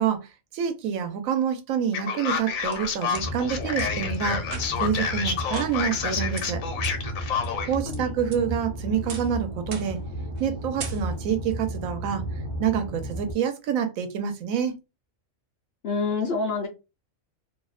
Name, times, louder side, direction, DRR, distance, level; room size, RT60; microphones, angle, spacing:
voice 1, 0.0-4.5 4.8-6.6 7.7-10.0 10.4-12.2 12.6-14.8, right 8 dB, 90° right, 1.0 m, -27 dB
Male speech man speaking, 1.9-7.7, left 6 dB, 80° left, 1.0 m, -29 dB
sound 1, 2.3-3.2 3.8-3.9 4.4-4.9 5.5-6.1 6.4-6.5 6.8-6.9 7.4-8.0 8.3-8.7 9.1-9.4 9.7-10.0 10.3-10.5 10.8-11.4, right 5 dB, 65° right, 0.8 m, -40 dB
sound 2, 3.1-13.3, right 1 dB, 40° right, 0.4 m, -34 dB
voice 2, 7.5-8.1 15.8-16.7, left 4 dB, 60° left, 0.7 m, -28 dB
2.7 x 2.0 x 2.3 m
omnidirectional pair, 1.4 m